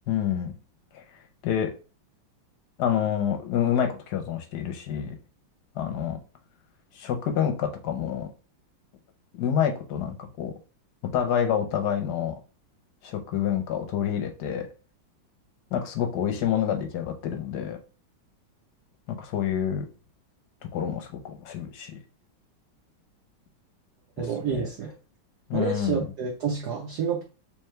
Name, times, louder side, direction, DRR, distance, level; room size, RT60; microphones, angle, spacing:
voice 1, 0.1-0.5 0.9-1.0 1.4-1.7 2.8-5.2 5.7-6.2 6.9-8.3 9.3-10.5 11.0-12.3 13.0-14.7 15.7-17.8 19.1-19.9 20.7-22.0 24.2-24.7 25.5-26.1, left 9 dB, 65° left, 5 dB, 1.1 m, -28 dB
voice 2, 24.2-24.9 25.5-27.2, right 6 dB, 65° right, -1 dB, 1.1 m, -29 dB
3.4 x 3.4 x 3.2 m, 0.34 s
omnidirectional pair, 2.2 m